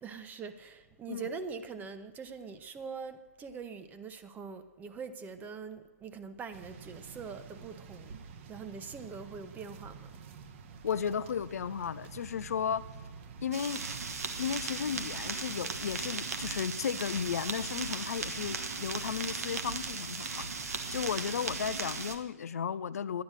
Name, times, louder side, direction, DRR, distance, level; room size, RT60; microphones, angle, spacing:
voice 1, 0.0-8.1 8.5-10.1, right 5 dB, 20° right, 0.9 m, -43 dB
sound 1, 6.5-21.7, right 5 dB, 50° right, 1.0 m, -49 dB
voice 2, 10.8-12.8 13.4-13.8 14.4-23.2, left 7 dB, 65° left, 0.6 m, -34 dB
sound 2, 13.5-22.2, right 4 dB, 65° right, 1.4 m, -37 dB
11.5 x 10.5 x 6.5 m
figure-of-eight pair, 110°, 9 cm